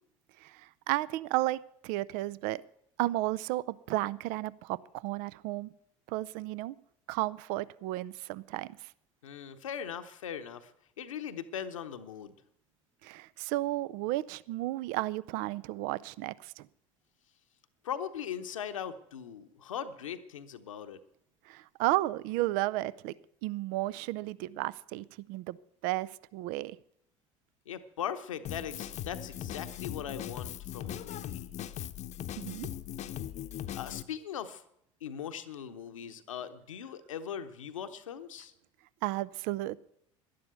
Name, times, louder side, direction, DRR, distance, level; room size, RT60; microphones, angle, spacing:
voice 1, 0.4-2.6 3.0-5.7 6.1-6.8 7.1-8.9 13.0-16.7 21.5-23.1 23.4-25.6 25.8-26.8 32.4-32.7 39.0-39.8, right 17 dB, 60° right, 20 dB, 0.5 m, -33 dB
voice 2, 9.2-10.7 11.0-12.3 17.8-21.0 27.7-31.5 33.7-34.6 35.0-38.5, left 8 dB, 80° left, 9 dB, 0.9 m, -40 dB
Drum kit, 28.4-34.0, left 11 dB, 45° left, 0.8 m, -39 dB
11.5 x 11.0 x 8.0 m, 0.73 s
hypercardioid pair, 65°, 16 cm